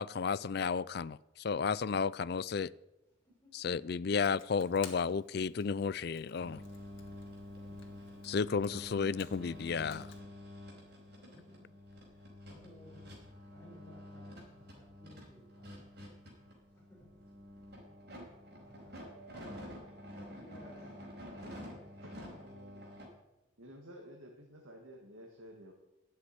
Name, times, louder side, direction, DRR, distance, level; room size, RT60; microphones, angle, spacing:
voice 1, 0.0-2.7 3.5-6.6 8.2-10.1, left 5 dB, 50° left, 19 dB, 0.4 m, -33 dB
Computer keyboard, 4.1-10.2, left 7 dB, 70° left, 1.9 m, -56 dB
sound 1, 6.4-23.1, left 1 dB, 55° right, 4.8 m, -49 dB
voice 2, 7.7-8.2 10.7-11.6 11.9-15.9 16.7-17.1 18.1-19.6 20.3-20.9 21.4-21.8, equal, 10° left, -4 dB, 5.7 m, -59 dB
voice 3, 19.3-19.8 22.0-22.9 23.6-25.7, equal, 85° right, 0 dB, 2.0 m, -53 dB
12.0 x 7.9 x 9.5 m, 0.97 s
head